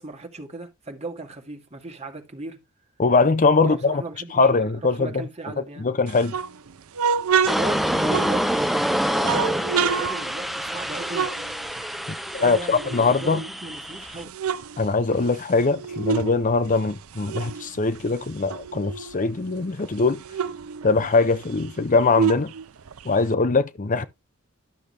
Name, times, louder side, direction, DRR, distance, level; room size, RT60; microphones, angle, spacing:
voice 1, 0.0-2.6 3.6-5.9 7.5-11.3 12.4-14.3 24.0-24.1, right 3 dB, 30° right, 2.1 m, -37 dB
voice 2, 3.0-4.0 4.3-5.1 5.8-6.3 12.1-12.2 12.4-13.4 14.8-20.2 20.8-22.5 23.0-24.0, left 3 dB, 40° left, 0.6 m, -21 dB
sound 1, 6.1-8.7 9.2-12.1 12.3-13.7 14.1-16.4 16.6-19.2 19.6-19.7 19.9-23.3, right 6 dB, 90° right, 0.6 m, -28 dB
sound 2, 7.5-14.2, equal, ahead, 0.5 m, -27 dB
12.0 x 6.5 x 3.3 m
head